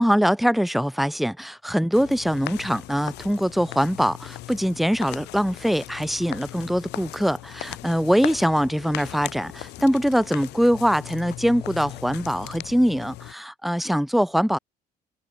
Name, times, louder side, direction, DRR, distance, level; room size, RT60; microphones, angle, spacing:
voice 1, 0.0-14.6, equal, ahead, 3.6 m, -23 dB
sound 1, 1.9-13.3, left 18 dB, 85° left, 5.8 m, -38 dB
cardioid pair, 110°, 17 cm